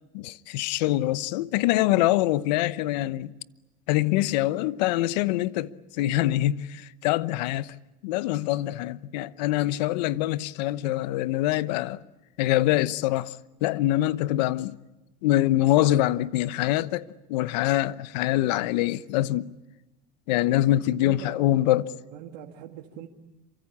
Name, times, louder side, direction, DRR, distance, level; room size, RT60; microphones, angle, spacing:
voice 1, 0.1-3.3 3.9-7.7 8.0-12.0 12.4-14.8 15.2-19.5 20.3-21.9, left 15 dB, 80° left, 1.0 m, -24 dB
voice 2, 20.9-21.5 21.9-23.1, right 11 dB, 80° right, 2.1 m, -41 dB
27.5 x 24.5 x 8.6 m
supercardioid pair, 100°, 21 cm